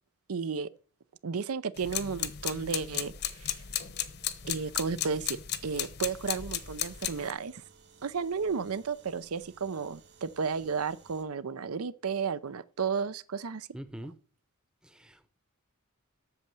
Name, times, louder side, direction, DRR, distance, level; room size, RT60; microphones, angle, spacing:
voice 1, 0.3-0.7 1.2-3.5 4.5-7.6 8.0-13.7, right 5 dB, 85° right, 0.6 m, -33 dB
sound 1, 1.8-7.3, left 10 dB, 50° left, 0.9 m, -35 dB
sound 2, 6.1-11.2, right 5 dB, 50° right, 1.8 m, -58 dB
voice 2, 13.7-14.1 14.9-15.3, equal, 5° right, 0.7 m, -43 dB
8.5 x 6.7 x 7.7 m
head